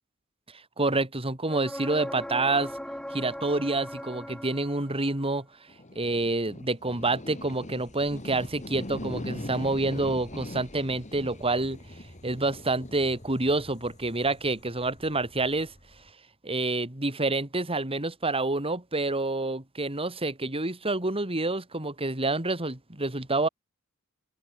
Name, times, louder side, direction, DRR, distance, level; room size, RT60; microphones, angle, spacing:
voice 1, 0.8-2.7 3.1-5.4 5.9-11.8 12.2-15.7 16.4-23.5, right 2 dB, 25° right, 3.3 m, -28 dB
sound 1, 1.5-5.2 8.9-9.0, equal, 5° left, 2.2 m, -39 dB
sound 2, 5.7-16.1, left 1 dB, 35° left, 4.7 m, -42 dB
open air
head